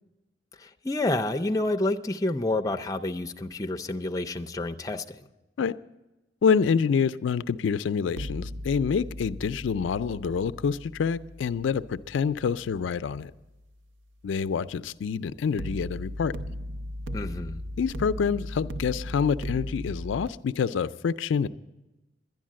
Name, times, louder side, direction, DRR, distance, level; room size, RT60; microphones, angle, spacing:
voice 1, 0.6-5.3 17.1-17.6, left 2 dB, 20° left, 0.5 m, -29 dB
voice 2, 6.4-13.3 14.2-16.4 17.8-21.5, left 6 dB, 85° left, 0.4 m, -27 dB
sound 1, 8.1-13.2 15.6-20.3, equal, 90° right, 0.6 m, -37 dB
11.0 x 11.0 x 7.4 m
head